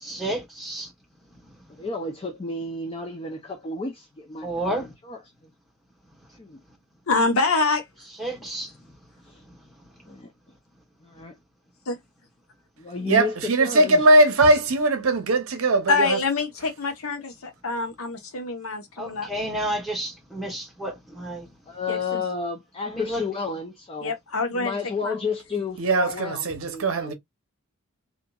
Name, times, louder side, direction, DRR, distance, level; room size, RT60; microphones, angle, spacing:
voice 1, 0.0-0.9 4.4-4.9 8.2-8.7 19.0-21.5 22.8-23.3, right 1 dB, ahead, 1.2 m, -31 dB
voice 2, 1.8-5.2 6.4-6.6 9.3-9.4 10.1-10.3 11.0-11.3 12.8-14.0 21.7-24.1 24.5-27.1, left 4 dB, 25° left, 0.4 m, -32 dB
voice 3, 7.1-7.9 11.9-12.0 15.9-19.3 21.9-22.2 24.0-24.8 25.0-25.2, left 3 dB, 70° left, 0.8 m, -25 dB
voice 4, 13.1-16.2 25.8-27.1, right 2 dB, 65° right, 0.7 m, -20 dB
2.8 x 2.5 x 2.2 m
head